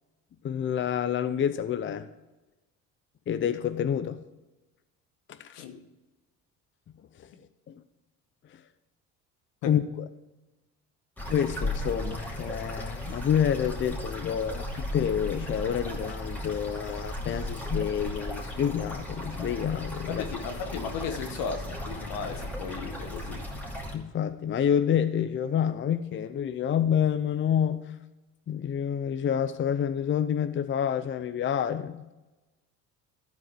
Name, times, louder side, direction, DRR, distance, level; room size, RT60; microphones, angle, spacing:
voice 1, 0.4-2.1 3.3-4.2 5.3-5.6 7.2-7.3 7.7-7.8 8.5-8.6 9.7-9.8 11.3-20.3 23.9-27.9 28.5-32.1, left 8 dB, 35° left, 0.6 m, -28 dB
sound 1, 11.2-24.0, left 1 dB, 5° left, 2.5 m, -36 dB
voice 2, 20.1-23.4, left 6 dB, 75° left, 1.3 m, -35 dB
12.5 x 4.8 x 5.9 m
supercardioid pair, 75°, 34 cm